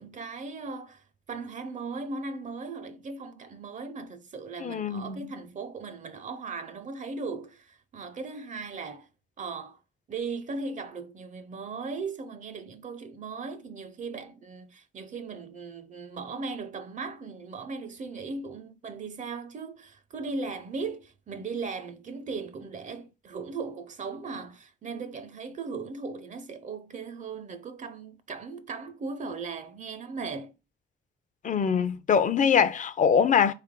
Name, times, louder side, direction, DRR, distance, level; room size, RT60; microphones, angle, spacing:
voice 1, 0.0-9.1 9.4-9.8 10.1-30.5, right 4 dB, 40° right, 0.5 m, -38 dB
voice 2, 4.6-5.2 31.4-33.5, left 7 dB, 40° left, 0.5 m, -23 dB
3.7 x 3.3 x 3.6 m
cardioid pair, 140°, 19 cm